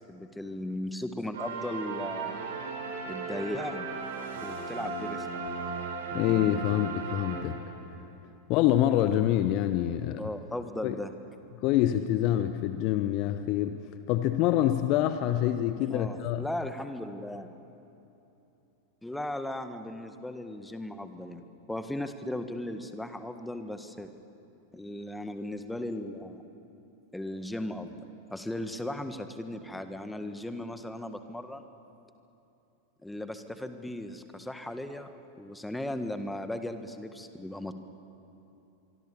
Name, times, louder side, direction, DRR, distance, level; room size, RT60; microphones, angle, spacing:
voice 1, 0.0-2.4 3.1-3.9 4.4-5.5 10.2-11.1 15.9-17.5 19.0-24.1 24.7-26.4 27.1-28.0 28.3-31.7 33.0-37.7, left 1 dB, 5° left, 9 dB, 1.6 m, -37 dB
sound 1, 1.3-7.9, right 4 dB, 60° right, 4.1 m, -36 dB
voice 2, 6.1-7.6 8.5-10.2 10.8-10.9 11.6-13.8 14.1-16.4, left 12 dB, 40° left, 10 dB, 0.9 m, -26 dB
25.0 x 25.0 x 7.3 m, 2.9 s
figure-of-eight pair, 90°, 0 cm